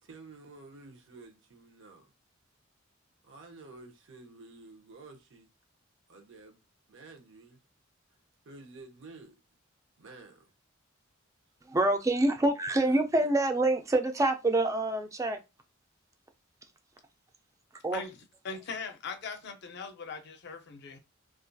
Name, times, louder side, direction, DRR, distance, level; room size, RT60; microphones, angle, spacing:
voice 1, 0.0-2.1 3.2-5.5 6.1-6.6 6.9-7.6 8.4-9.4 10.0-10.5 12.9-13.3, right 3 dB, 65° right, 0.7 m, -51 dB
voice 2, 11.6-15.4 17.8-18.0, right 2 dB, 15° right, 0.3 m, -26 dB
voice 3, 18.4-21.0, left 5 dB, 55° left, 0.5 m, -40 dB
2.6 x 2.3 x 2.2 m
head